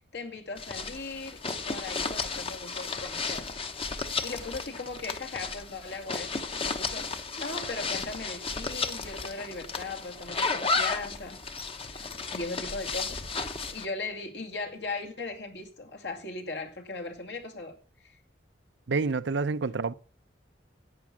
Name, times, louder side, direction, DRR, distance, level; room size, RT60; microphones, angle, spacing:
voice 1, 0.1-3.5 3.8-11.4 12.3-18.1, left 3 dB, 70° left, 2.3 m, -38 dB
sound 1, 0.6-13.9, left 4 dB, 30° left, 1.0 m, -33 dB
voice 2, 18.9-19.9, right 4 dB, 75° right, 0.6 m, -28 dB
11.0 x 8.6 x 7.4 m
head